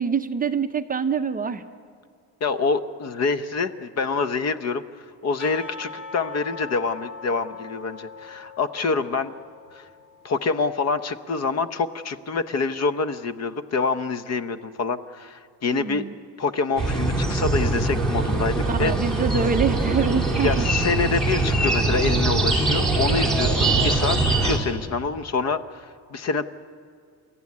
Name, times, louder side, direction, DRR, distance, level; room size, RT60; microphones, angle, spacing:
voice 1, 0.0-1.6 15.7-16.1 18.7-20.7, right 6 dB, 20° right, 7 dB, 0.6 m, -25 dB
voice 2, 2.4-9.3 9.7-9.9 10.2-16.1 16.4-18.9 20.4-26.5, left 4 dB, 40° left, 12 dB, 0.8 m, -26 dB
Percussion / Church bell, 5.4-10.5, left 4 dB, 65° left, 3.0 m, -41 dB
sound 1, 16.8-24.6, right 2 dB, ahead, 3.0 m, -22 dB
29.5 x 14.0 x 9.6 m, 2.2 s
cardioid pair, 165°, 41 cm